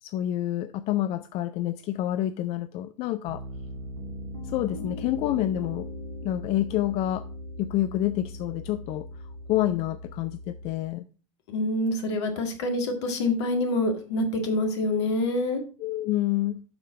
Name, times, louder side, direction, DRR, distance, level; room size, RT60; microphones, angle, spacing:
voice 1, 0.0-3.4 4.5-5.9 6.2-7.3 7.6-9.1 9.5-11.0 15.8-16.6, left 13 dB, 35° left, 0.4 m, -28 dB
Piano, 3.2-10.7, left 1 dB, 90° right, 1.7 m, -39 dB
voice 2, 11.5-15.6, left 2 dB, 60° left, 1.9 m, -26 dB
8.0 x 6.6 x 4.0 m
figure-of-eight pair, 80°, 16 cm